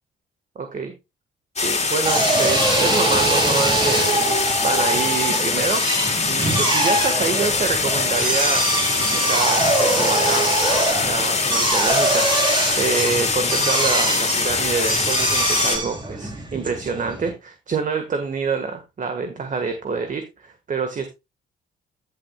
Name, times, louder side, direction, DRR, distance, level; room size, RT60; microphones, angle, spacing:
voice 1, 0.5-0.9 1.6-5.8 6.2-10.5 11.0-21.1, right 5 dB, 40° right, 7 dB, 1.5 m, -27 dB
sound 1, 1.6-15.8, left 4 dB, 35° left, 2.7 m, -23 dB
Drill, 2.0-17.3, right 2 dB, 25° right, 2.8 m, -23 dB
14.0 x 7.2 x 2.3 m, 0.24 s
cardioid pair, 90°, 20 cm